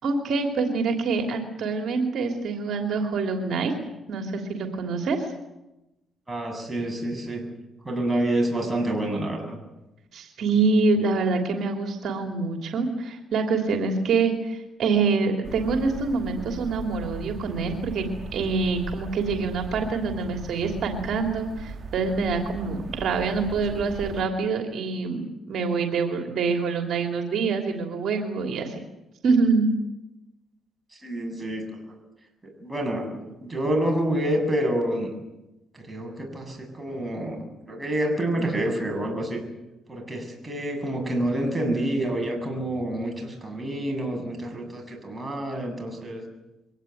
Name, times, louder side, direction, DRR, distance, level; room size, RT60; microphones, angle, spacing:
voice 1, 0.0-3.7 4.1-5.3 10.1-18.1 18.3-28.8 29.2-29.7, right 4 dB, 65° right, 4 dB, 3.0 m, -25 dB
voice 2, 6.3-7.5 7.8-9.6 30.9-31.9 32.4-35.1 35.7-39.4 39.9-46.2, right 1 dB, 15° right, 2 dB, 7.5 m, -28 dB
sound 1, 15.4-24.2, right 5 dB, 45° right, 2.0 m, -38 dB
23.5 x 18.0 x 9.4 m, 0.98 s
cardioid pair, 90°, 0 cm